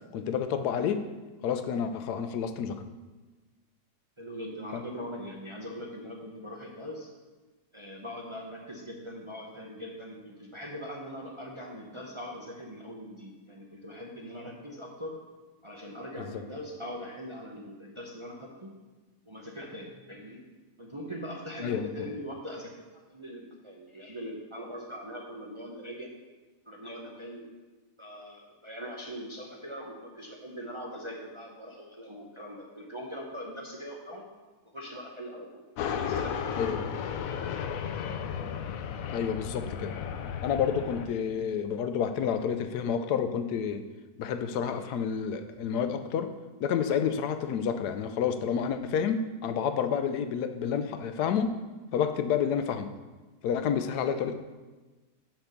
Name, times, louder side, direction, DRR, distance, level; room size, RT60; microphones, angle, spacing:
voice 1, 0.1-1.0 1.4-2.8 16.2-16.3 21.6-21.9 36.6-36.8 39.1-39.9 40.4-43.8 44.2-46.3 46.6-51.5 51.9-52.9 53.4-54.3, left 7 dB, 85° left, 9 dB, 1.2 m, -29 dB
voice 2, 4.2-7.1 7.7-15.2 15.6-18.7 19.2-20.4 20.8-26.1 26.7-27.4 28.0-34.2 34.7-36.7, equal, 25° right, -1 dB, 0.6 m, -41 dB
sound 1, 35.8-41.1, left 7 dB, 70° left, 0.9 m, -34 dB
6.1 x 5.8 x 6.7 m, 1.2 s
omnidirectional pair, 1.7 m